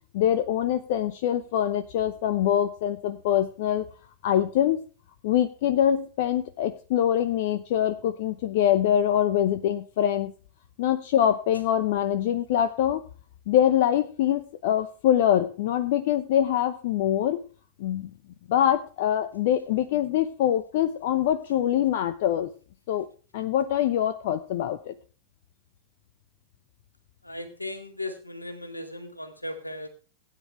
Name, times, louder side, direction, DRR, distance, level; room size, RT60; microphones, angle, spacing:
voice 1, 0.1-3.8 4.2-4.8 5.2-10.3 10.8-13.0 13.5-17.4 17.8-18.1 18.5-22.5 22.9-23.1 23.3-24.9, left 10 dB, 50° left, 10 dB, 0.8 m, -24 dB
voice 2, 27.2-29.9, left 1 dB, 85° left, 6 dB, 2.1 m, -37 dB
17.0 x 9.7 x 3.3 m, 0.37 s
figure-of-eight pair, 90°, 0 cm